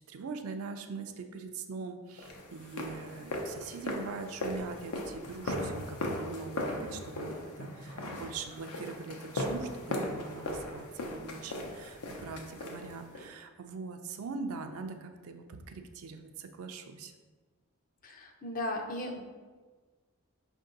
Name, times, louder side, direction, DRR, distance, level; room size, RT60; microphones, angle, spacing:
voice 1, 0.1-17.1, right 4 dB, 80° right, 6 dB, 0.4 m, -42 dB
sound 1, 2.2-13.3, left 1 dB, 85° left, 0.7 m, -38 dB
voice 2, 18.0-19.2, left 1 dB, 40° left, 3 dB, 0.5 m, -36 dB
5.3 x 2.6 x 3.8 m, 1.4 s
head